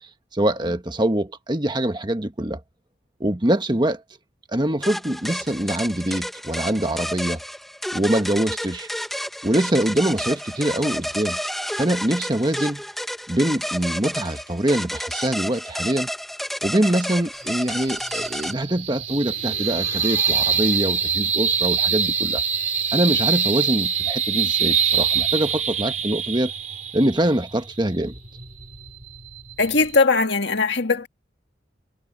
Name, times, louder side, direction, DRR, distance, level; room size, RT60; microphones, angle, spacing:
voice 1, 0.3-2.6 3.2-4.0 4.5-7.4 7.9-8.9 9.4-11.4 11.8-12.8 13.3-16.1 16.6-22.4 22.9-26.5 26.9-28.1, right 1 dB, 25° right, 1.3 m, -24 dB
sound 1, 4.8-18.5, equal, ahead, 1.5 m, -30 dB
sound 2, 17.3-30.0, right 7 dB, 40° right, 3.6 m, -25 dB
voice 2, 29.6-31.1, left 4 dB, 60° left, 2.0 m, -19 dB
head